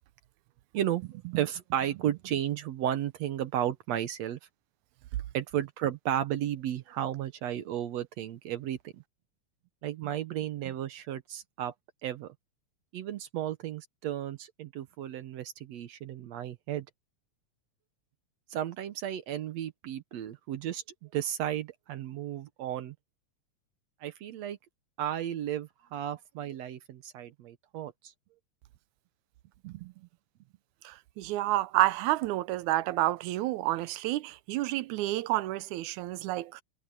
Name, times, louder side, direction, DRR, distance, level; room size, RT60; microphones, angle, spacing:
voice 1, 0.7-4.4 5.3-9.0 9.8-11.7 12.0-12.3 12.9-16.9 18.5-23.0 24.0-24.6 25.0-28.1 29.6-30.1, right 11 dB, 70° right, 2.0 m, -34 dB
voice 2, 30.9-36.6, right 16 dB, 85° right, 2.0 m, -29 dB
omnidirectional pair, 3.4 m